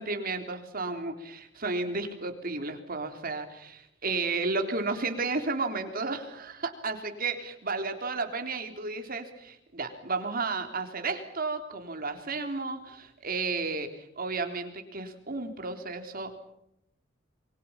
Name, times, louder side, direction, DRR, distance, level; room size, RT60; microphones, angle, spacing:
voice 1, 0.0-16.3, right 3 dB, 50° right, 6 dB, 3.6 m, -33 dB
27.5 x 24.0 x 5.9 m, 0.76 s
head